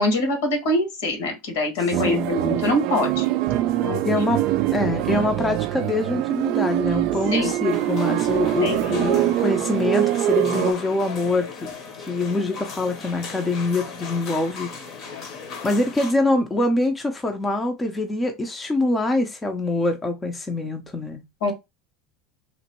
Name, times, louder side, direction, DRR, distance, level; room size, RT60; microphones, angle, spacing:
voice 1, 0.0-3.3 3.8-4.1 7.3-7.8 8.6-9.1 21.4-21.5, left 1 dB, 80° left, 1.4 m, -24 dB
sound 1, 1.9-10.7, right 14 dB, 50° right, 0.3 m, -23 dB
voice 2, 4.0-4.4 4.7-11.5 12.0-14.7 15.6-21.2, left 2 dB, 15° left, 0.5 m, -24 dB
sound 2, 7.7-16.1, left 5 dB, 45° left, 0.8 m, -37 dB
3.0 x 2.6 x 2.9 m
supercardioid pair, 140°, 0 cm